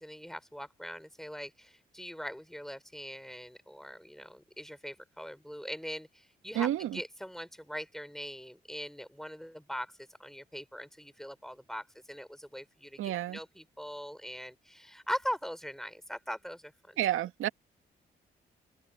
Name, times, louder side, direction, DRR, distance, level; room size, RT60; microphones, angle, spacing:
voice 1, 0.0-17.0, equal, ahead, 4.9 m, -41 dB
voice 2, 6.5-7.0 13.0-13.4 17.0-17.5, right 13 dB, 75° right, 2.2 m, -30 dB
open air
hypercardioid pair, 45°, 21 cm